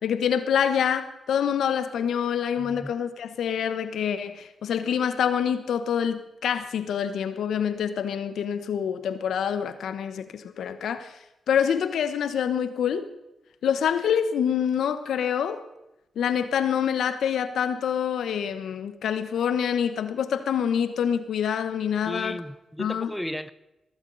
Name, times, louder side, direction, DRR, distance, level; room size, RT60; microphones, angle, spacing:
voice 1, 0.0-11.2 11.5-13.1 13.6-15.6 16.2-22.4 22.8-23.1, left 8 dB, 80° left, 1.1 m, -26 dB
voice 2, 2.6-2.9 22.0-23.5, equal, 5° left, 0.8 m, -34 dB
16.5 x 14.5 x 4.1 m
supercardioid pair, 55°, 0 cm